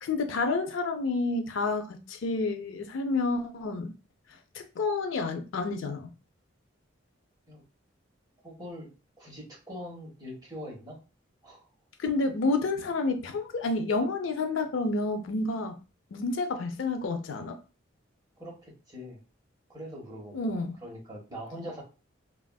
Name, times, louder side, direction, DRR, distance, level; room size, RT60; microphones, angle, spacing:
voice 1, 0.0-3.9 4.5-6.1 12.0-15.8 16.1-17.6 20.3-20.8, left 3 dB, 75° left, 0.4 m, -29 dB
voice 2, 8.4-8.9 9.2-11.0 11.4-11.7 18.4-19.2 19.7-21.8, equal, 20° right, 1.1 m, -42 dB
3.3 x 2.4 x 2.3 m
head